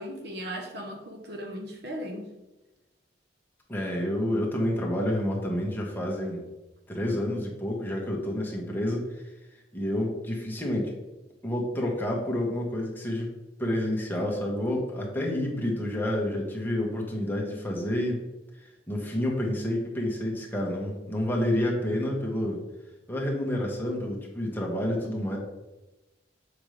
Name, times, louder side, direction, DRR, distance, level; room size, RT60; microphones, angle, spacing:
voice 1, 0.0-2.3, equal, 65° right, 1.0 m, -37 dB
voice 2, 3.7-6.4 6.9-9.2 9.7-10.9 11.4-13.3 13.6-18.2 18.9-22.6 23.1-25.4, left 1 dB, 10° left, 1.3 m, -29 dB
7.2 x 5.2 x 3.2 m
head